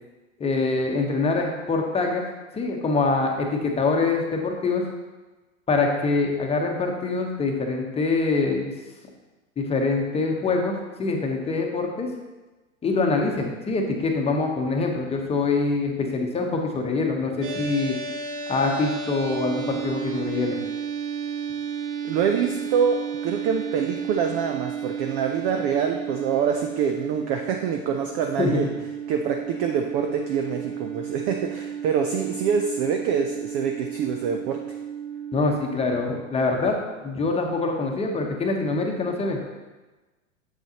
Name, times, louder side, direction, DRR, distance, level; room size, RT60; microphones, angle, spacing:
voice 1, 0.4-2.2 2.5-4.8 5.7-8.7 9.6-10.7 11.0-12.1 12.8-18.0 18.5-20.6 28.4-28.6 35.3-36.8 37.0-39.6, left 3 dB, 15° left, 2 dB, 1.0 m, -24 dB
sound 1, 17.4-35.8, right 7 dB, 45° right, 1.4 m, -33 dB
voice 2, 22.0-28.7 29.1-34.8, right 7 dB, 25° right, 4 dB, 0.3 m, -25 dB
7.9 x 7.3 x 2.9 m, 1.2 s
figure-of-eight pair, 95°, 40 cm